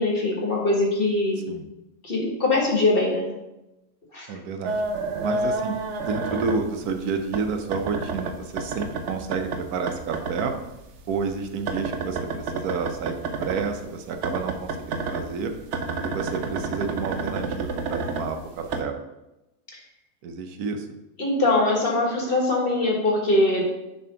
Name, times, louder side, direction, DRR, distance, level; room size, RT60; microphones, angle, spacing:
voice 1, 0.0-1.4 2.0-3.3 4.1-4.3 21.2-23.6, left 2 dB, 40° left, -1 dB, 1.4 m, -22 dB
voice 2, 4.3-4.8 5.2-10.5 11.1-15.5 16.0-18.9 20.2-21.0, right 5 dB, 80° right, 5 dB, 1.2 m, -30 dB
sound 1, 4.6-7.0 7.3-10.5 10.8-13.7 14.2-18.8, right 3 dB, 60° right, 0.8 m, -29 dB
6.5 x 3.4 x 5.7 m, 0.96 s
omnidirectional pair, 1.6 m